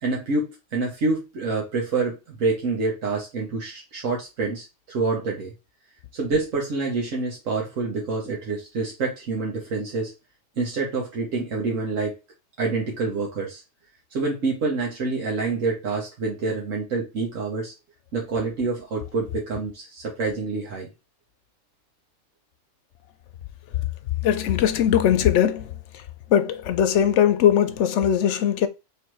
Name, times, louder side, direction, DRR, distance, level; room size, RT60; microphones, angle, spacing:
voice 1, 0.0-5.5 6.1-10.1 10.6-12.2 12.6-13.6 14.1-17.7 18.1-20.9, right 3 dB, 80° right, 1.5 m, -27 dB
voice 2, 24.2-26.0 26.3-28.7, left 9 dB, 70° left, 0.9 m, -20 dB
3.5 x 3.2 x 4.5 m
omnidirectional pair, 1.3 m